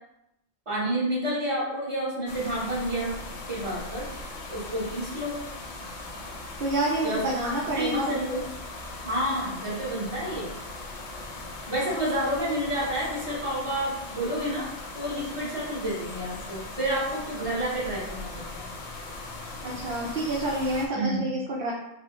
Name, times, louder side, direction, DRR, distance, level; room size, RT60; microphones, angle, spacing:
voice 1, 0.7-3.1 3.5-4.1 4.5-5.3 7.0-7.2 7.7-8.4 9.0-10.5 11.7-14.7 14.9-18.7 20.9-21.3, right 1 dB, 30° right, -7 dB, 1.2 m, -29 dB
sound 1, 2.3-20.9, left 2 dB, 80° left, 0.9 m, -39 dB
voice 2, 6.6-8.2 19.6-21.7, right 1 dB, 60° right, -3 dB, 0.7 m, -28 dB
4.6 x 2.1 x 3.1 m, 0.86 s
omnidirectional pair, 1.1 m